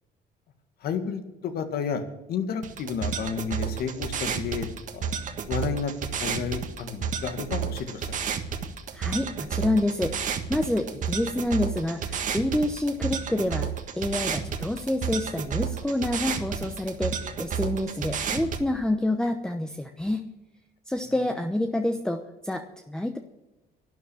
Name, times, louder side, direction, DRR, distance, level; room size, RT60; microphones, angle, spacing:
voice 1, 0.8-2.0 2.3-4.7 4.9-5.1 5.5-8.1, left 6 dB, 65° left, 7 dB, 1.9 m, -31 dB
sound 1, 2.6-18.6, right 7 dB, 50° right, 1.6 m, -31 dB
voice 2, 8.9-13.7 14.0-20.3 20.9-23.2, left 1 dB, 5° left, 5 dB, 0.9 m, -28 dB
12.0 x 10.0 x 8.5 m, 1.1 s
cardioid pair, 110°, 17 cm